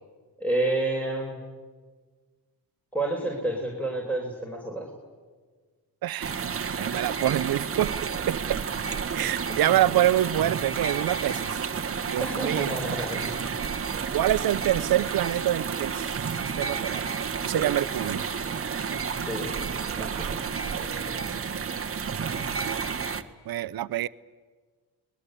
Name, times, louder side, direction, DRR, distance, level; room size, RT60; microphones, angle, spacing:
voice 1, 0.4-1.4 2.9-4.9 9.5-9.8 12.2-13.3 17.5-17.7 19.3-19.6 20.0-20.4 20.8-21.3, right 2 dB, 5° left, 4.8 m, -30 dB
voice 2, 6.0-6.5 6.8-8.6 9.1-11.6 12.1-12.8 14.1-17.1 17.4-18.2 20.0-20.5 21.2-21.6 23.5-24.1, right 13 dB, 60° right, 0.8 m, -26 dB
sound 1, 6.2-23.2, right 6 dB, 35° right, 1.5 m, -31 dB
30.0 x 21.0 x 8.4 m
cardioid pair, 90°, 41 cm